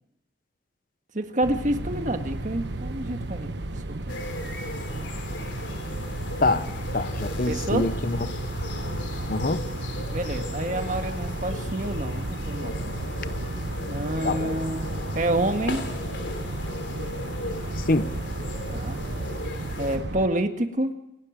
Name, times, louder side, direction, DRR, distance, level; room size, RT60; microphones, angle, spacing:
voice 1, 1.1-3.5 4.0-4.2 7.5-7.9 10.1-12.8 13.9-14.9 15.1-15.8 18.7-19.0 19.8-20.9, right 1 dB, 45° right, 6 dB, 1.8 m, -28 dB
sound 1, 1.4-20.3, right 2 dB, 70° right, 1.2 m, -33 dB
sound 2, 4.1-20.0, left 2 dB, 80° left, 3.3 m, -37 dB
voice 2, 6.4-8.3 9.3-9.6 14.2-14.5 17.8-18.1, left 2 dB, 50° left, 13 dB, 0.8 m, -25 dB
28.0 x 12.5 x 7.4 m, 0.87 s
head